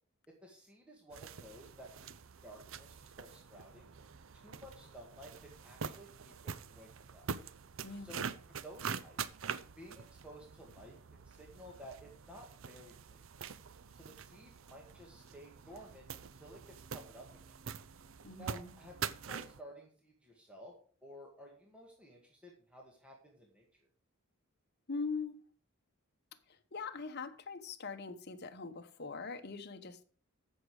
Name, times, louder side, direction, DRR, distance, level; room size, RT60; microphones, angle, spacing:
voice 1, 0.3-2.1 2.4-3.9 4.3-7.3 8.0-8.3 8.6-9.3 9.8-13.2 14.0-17.3 18.4-20.7 21.0-23.7, equal, 5° right, 1.9 m, -54 dB
sound 1, 1.1-19.6, right 6 dB, 65° right, 0.6 m, -45 dB
voice 2, 18.2-18.7 24.9-25.4 26.5-30.0, left 4 dB, 50° left, 1.1 m, -42 dB
15.0 x 6.5 x 4.9 m
head